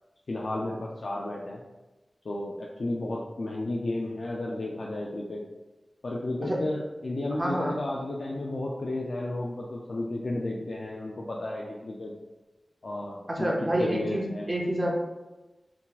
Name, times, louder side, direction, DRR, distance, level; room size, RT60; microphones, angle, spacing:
voice 1, 0.3-1.6 2.2-5.4 6.0-12.1 12.8-13.5 13.8-14.5, left 2 dB, 70° left, -3 dB, 0.4 m, -33 dB
voice 2, 7.3-7.8 13.3-15.0, right 1 dB, 30° right, -1 dB, 0.6 m, -28 dB
3.7 x 2.8 x 2.4 m, 1.1 s
wide cardioid pair, 70°, 0 cm